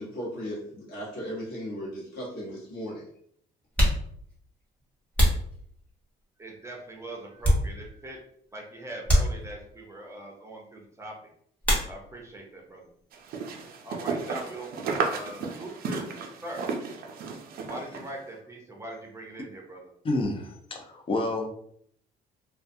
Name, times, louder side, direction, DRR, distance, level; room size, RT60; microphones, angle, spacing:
voice 1, 0.0-3.1, equal, 65° left, -5 dB, 1.1 m, -36 dB
sound 1, 1.9-2.0 2.9-3.0 3.6-6.2 6.8-8.1 8.4-8.6 9.0-9.9 11.6-12.4 12.7-13.4 13.6-15.8, equal, 10° left, 0.9 m, -28 dB
voice 2, 6.4-8.2 8.5-11.1 11.9-12.9 13.8-16.1 16.4-16.6 17.7-19.8, right 1 dB, 15° right, 0 dB, 0.6 m, -41 dB
sound 2, 13.1-18.1, right 4 dB, 60° right, 0.5 m, -33 dB
voice 3, 20.0-21.5, left 2 dB, 30° left, 3 dB, 0.5 m, -29 dB
2.3 x 2.2 x 2.6 m, 0.66 s
cardioid pair, 110°, 17 cm